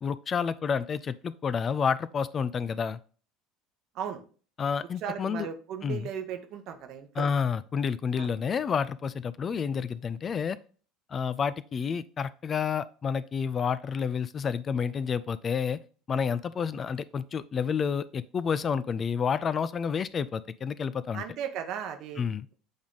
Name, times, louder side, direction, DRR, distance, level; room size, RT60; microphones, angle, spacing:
voice 1, 0.0-3.0 4.6-5.5 5.8-6.1 7.2-10.6 11.1-15.8 16.1-21.2 22.2-22.5, left 6 dB, 35° left, 16 dB, 0.3 m, -29 dB
voice 2, 5.0-7.3 8.2-8.3 21.1-22.2, right 8 dB, 50° right, 7 dB, 0.9 m, -36 dB
7.9 x 3.5 x 3.8 m, 0.40 s
figure-of-eight pair, 65°, 0 cm